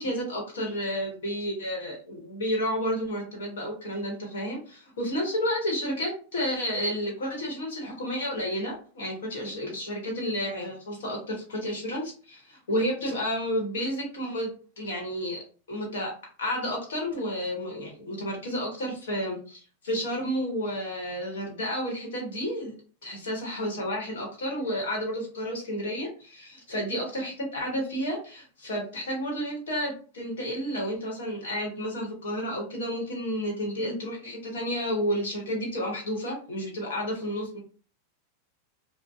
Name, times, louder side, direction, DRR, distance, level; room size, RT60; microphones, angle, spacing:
voice 1, 0.0-14.5 14.8-15.4 15.7-16.1 16.4-22.8 23.0-37.6, equal, 80° left, 0 dB, 1.0 m, -31 dB
2.6 x 2.1 x 2.3 m, 0.39 s
hypercardioid pair, 105°, 0 cm